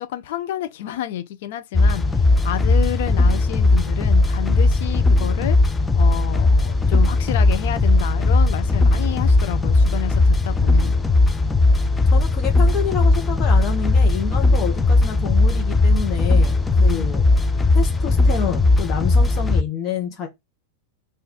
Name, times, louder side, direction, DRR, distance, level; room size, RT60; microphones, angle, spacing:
voice 1, 0.0-5.6 6.0-11.0 16.8-17.1, left 12 dB, 55° left, 0.6 m, -30 dB
sound 1, 1.7-19.6, left 2 dB, 10° left, 0.4 m, -17 dB
voice 2, 12.1-17.2 17.7-20.3, left 7 dB, 35° left, 1.0 m, -28 dB
4.0 x 2.6 x 4.1 m
figure-of-eight pair, 90°, 0 cm